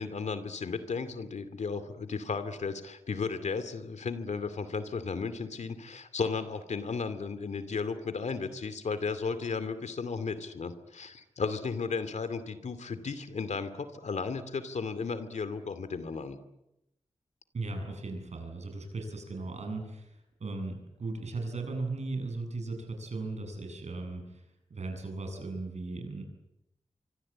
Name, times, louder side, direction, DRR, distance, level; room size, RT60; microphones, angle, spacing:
voice 1, 0.0-16.4, left 5 dB, 85° left, 11 dB, 2.5 m, -34 dB
voice 2, 17.5-20.1 20.4-24.4 24.7-26.2, right 3 dB, 75° right, 4 dB, 8.0 m, -37 dB
25.0 x 25.0 x 8.8 m, 0.88 s
wide cardioid pair, 80°, 12 cm